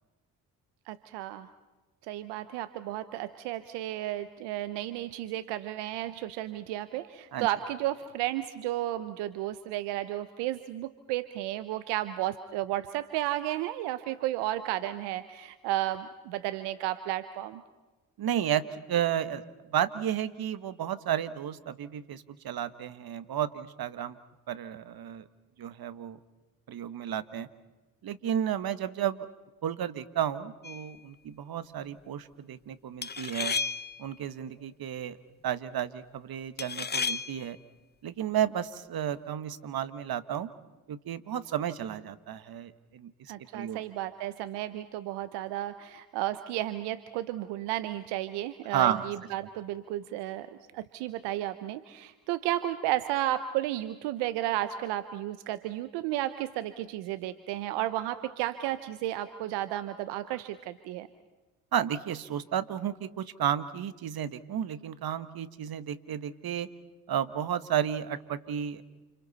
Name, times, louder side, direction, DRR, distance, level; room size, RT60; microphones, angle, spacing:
voice 1, 0.9-1.5 2.1-17.6 43.3-50.5 50.7-61.1, right 14 dB, 85° right, 12 dB, 1.0 m, -33 dB
voice 2, 18.2-19.4 19.7-24.1 24.5-25.2 25.6-26.2 26.7-27.5 28.0-29.3 29.6-33.6 34.0-35.2 35.4-37.6 38.0-40.5 40.9-43.1 43.5-43.8 48.7-49.1 61.7-66.7 67.1-68.8, right 10 dB, 60° right, 13 dB, 1.5 m, -32 dB
sound 1, 30.6-30.9 33.0-34.1 36.6-37.5, left 5 dB, 25° left, 0.8 m, -33 dB
29.5 x 29.0 x 4.2 m, 1.1 s
supercardioid pair, 50°, 40 cm